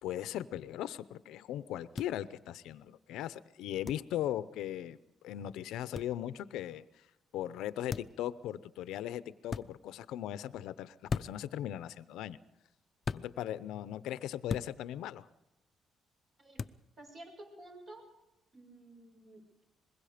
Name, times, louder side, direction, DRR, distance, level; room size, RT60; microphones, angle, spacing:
voice 1, 0.0-5.0 5.2-6.9 7.3-12.4 13.1-15.3, left 12 dB, 90° left, 15 dB, 0.7 m, -38 dB
sound 1, 2.0-2.1 3.8-4.0 5.9-6.1 7.9-8.2 9.5-9.7 11.1-11.5 13.0-13.3 14.5-14.7 16.6-16.8, left 5 dB, 45° left, 0.6 m, -36 dB
voice 2, 17.0-18.1 18.5-19.6, right 1 dB, 45° right, 3 dB, 6.9 m, -52 dB
24.5 x 21.0 x 5.1 m, 0.95 s
cardioid pair, 90°, 0 cm